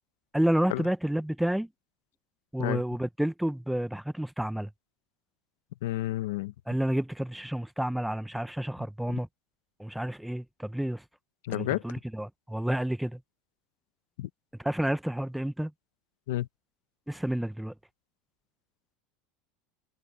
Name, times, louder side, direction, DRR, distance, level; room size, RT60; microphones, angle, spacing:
voice 1, 0.3-1.7 2.5-4.7 6.7-9.3 9.8-11.0 11.5-13.2 14.6-15.7 17.1-17.7, right 1 dB, ahead, 0.6 m, -30 dB
voice 2, 5.8-6.5 9.1-9.2 11.4-11.8 14.2-14.3 16.3-16.5, left 15 dB, 90° left, 0.9 m, -30 dB
supercardioid pair, 170°, 0 cm